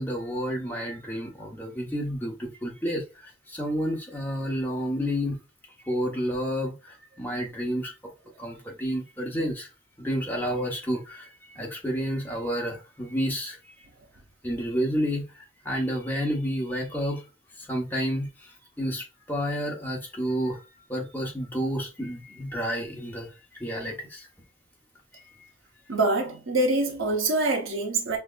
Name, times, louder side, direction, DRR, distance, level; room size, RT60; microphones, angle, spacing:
voice 1, 0.0-3.0 3.5-5.4 5.8-7.9 8.4-9.7 10.0-13.6 14.4-15.2 15.6-17.2 17.6-18.3 18.8-20.6 20.9-23.3 23.6-24.3, equal, 10° left, 0.9 m, -30 dB
voice 2, 25.9-28.2, right 2 dB, 80° right, 1.0 m, -25 dB
5.7 x 2.2 x 2.4 m
head